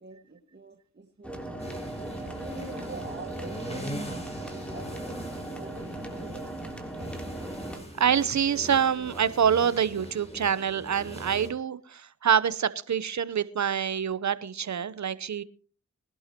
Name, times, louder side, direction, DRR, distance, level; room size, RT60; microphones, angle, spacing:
voice 1, 0.0-1.8 2.3-4.3 4.7-6.5, right 2 dB, 35° right, 2 dB, 2.0 m, -45 dB
sound 1, 1.2-7.8, right 1 dB, 5° left, 3.4 m, -38 dB
sound 2, 1.6-11.5, equal, 20° left, 6.8 m, -41 dB
voice 2, 8.0-15.4, right 8 dB, 60° right, 16 dB, 0.9 m, -26 dB
21.5 x 11.5 x 3.0 m, 0.39 s
cardioid pair, 45°, 32 cm